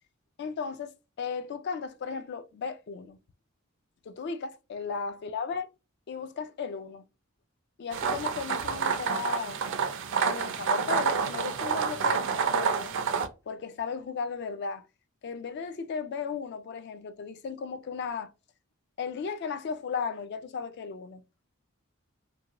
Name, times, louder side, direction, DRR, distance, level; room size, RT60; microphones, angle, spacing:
voice 1, 0.4-3.2 4.1-5.7 6.1-7.0 7.8-9.6 10.3-13.0 13.5-14.9 15.2-18.3 19.0-21.2, left 5 dB, 50° left, 0.3 m, -35 dB
sound 1, 7.9-13.3, right 6 dB, 60° right, 0.4 m, -28 dB
2.6 x 2.2 x 2.8 m
head